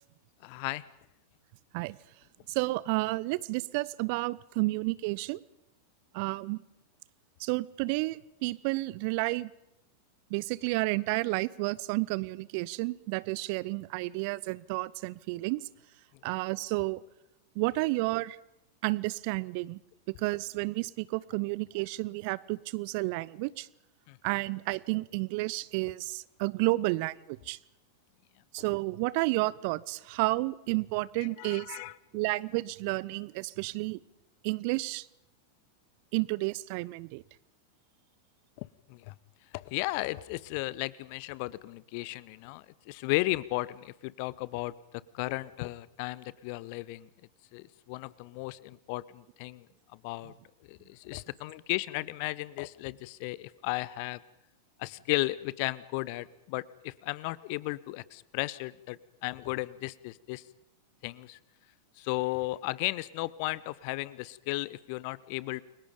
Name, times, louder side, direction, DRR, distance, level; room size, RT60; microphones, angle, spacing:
voice 1, 0.4-0.8 24.1-24.2 31.2-31.9 38.6-39.1 39.5-44.7 45.1-47.1 47.5-49.6 49.9-50.3 50.7-54.2 54.8-60.4 61.0-61.4 62.0-65.6, left 21 dB, 45° left, 20 dB, 0.9 m, -35 dB
voice 2, 2.5-5.4 6.1-6.6 7.4-9.5 10.3-15.7 16.2-17.0 17.5-18.4 18.8-19.8 20.2-23.7 24.2-27.6 28.5-31.8 32.1-34.0 34.4-35.1 36.1-37.2, right 22 dB, 45° right, 22 dB, 0.8 m, -31 dB
30.0 x 23.0 x 5.2 m, 0.85 s
figure-of-eight pair, 90°, 0 cm